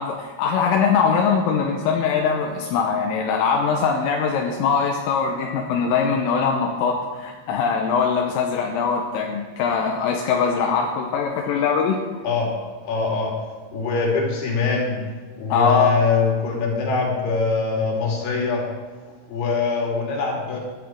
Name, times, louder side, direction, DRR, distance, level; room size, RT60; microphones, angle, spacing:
voice 1, 0.0-12.0 15.5-16.0, left 6 dB, 80° left, 1 dB, 3.6 m, -22 dB
voice 2, 12.8-13.3 13.7-15.0 15.4-18.6 19.3-20.6, left 4 dB, 55° left, -2 dB, 4.5 m, -23 dB
17.0 x 12.0 x 4.6 m, 1.5 s
omnidirectional pair, 6.0 m